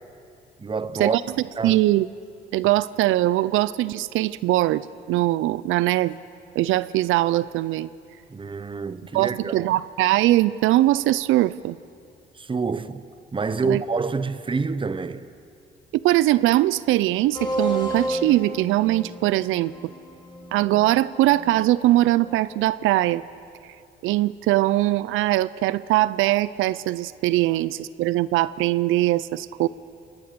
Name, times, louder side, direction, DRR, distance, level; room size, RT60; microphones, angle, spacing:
voice 1, 0.6-1.2 1.6-1.8 8.3-9.7 12.3-13.0 13.3-15.3, right 4 dB, 25° right, 1.0 m, -27 dB
voice 2, 1.6-2.1 2.5-6.2 6.6-7.9 9.1-11.8 13.6-13.8 16.0-19.7 20.5-23.2 24.0-29.7, right 16 dB, 90° right, 0.5 m, -21 dB
sound 1, 17.3-22.7, right 1 dB, 25° left, 5.7 m, -32 dB
29.0 x 19.0 x 6.8 m
cardioid pair, 90°, 20 cm